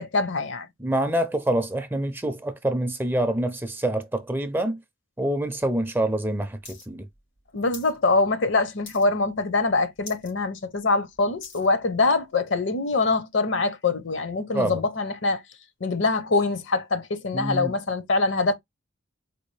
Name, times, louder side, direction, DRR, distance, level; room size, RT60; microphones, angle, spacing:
voice 1, 0.0-0.7 7.5-15.4 15.8-18.5, left 3 dB, 65° left, 0.7 m, -24 dB
voice 2, 0.8-4.8 5.2-7.1 14.5-14.8 17.3-17.7, right 1 dB, 10° right, 0.4 m, -26 dB
sound 1, 6.6-6.9 7.1-7.9 8.3-8.5 8.8-9.3 9.7-9.8 10.0-10.3 10.8-11.7 12.3-12.4, left 4 dB, 90° left, 2.8 m, -43 dB
4.4 x 2.4 x 3.1 m
head